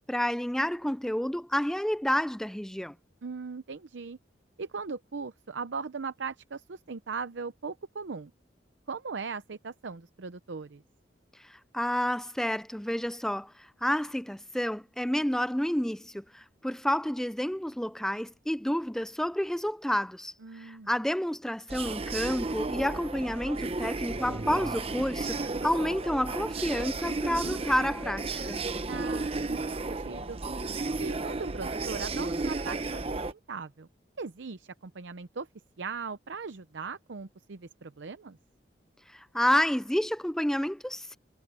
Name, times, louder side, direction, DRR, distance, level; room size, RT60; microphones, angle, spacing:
voice 1, 0.1-2.9 11.5-13.5 13.8-28.6 39.1-41.2, equal, 5° left, 0.4 m, -29 dB
voice 2, 3.2-4.2 4.6-8.3 8.9-10.8 20.4-20.9 28.9-30.4 31.0-33.9 34.2-35.5 35.8-38.4, right 5 dB, 75° right, 0.7 m, -39 dB
sound 1, 21.7-33.3, right 3 dB, 30° right, 0.8 m, -33 dB
head